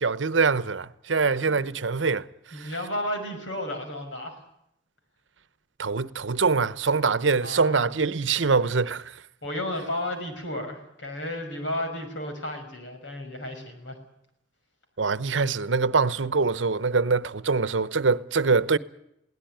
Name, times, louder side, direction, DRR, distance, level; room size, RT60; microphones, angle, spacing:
voice 1, 0.0-2.7 5.8-9.2 15.0-18.8, right 4 dB, 85° right, 0.9 m, -24 dB
voice 2, 1.2-1.7 2.5-4.4 7.4-7.8 9.4-14.0, left 1 dB, 90° left, 5.9 m, -33 dB
22.0 x 17.0 x 9.2 m
head